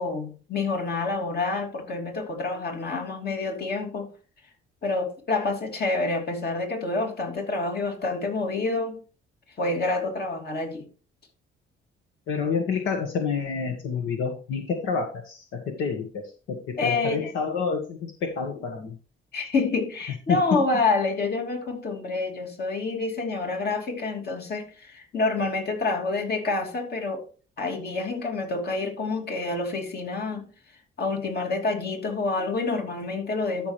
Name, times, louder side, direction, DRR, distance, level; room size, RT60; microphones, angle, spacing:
voice 1, 0.0-4.1 4.8-9.0 9.6-10.8 16.8-17.3 19.3-27.2 27.6-30.5 31.0-33.7, left 3 dB, 55° left, 2.8 m, -28 dB
voice 2, 12.3-19.0 20.3-20.4, left 5 dB, 85° left, 1.5 m, -28 dB
13.0 x 6.0 x 3.2 m
cardioid pair, 90°, 20 cm